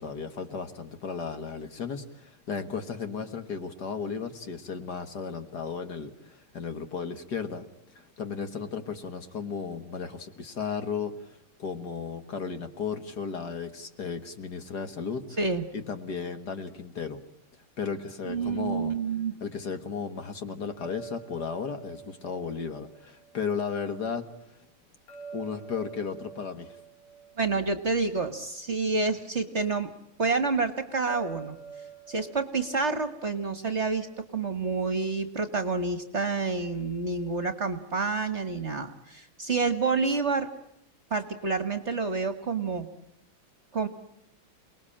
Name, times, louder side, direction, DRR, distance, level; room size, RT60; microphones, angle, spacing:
voice 1, 0.0-7.7 7.9-11.3 11.6-15.3 15.7-17.2 17.8-18.9 19.4-24.3 25.3-26.8, left 6 dB, 50° left, 8 dB, 2.0 m, -35 dB
voice 2, 15.4-15.7 18.2-19.3 27.4-29.9 30.2-31.6 32.1-40.5 41.1-42.9 43.7-43.9, right 4 dB, 35° right, 11 dB, 1.6 m, -28 dB
sound 1, 20.8-23.9 25.1-28.6 31.1-34.1, right 6 dB, 75° left, 4.0 m, -47 dB
29.0 x 20.0 x 8.7 m, 0.82 s
omnidirectional pair, 2.3 m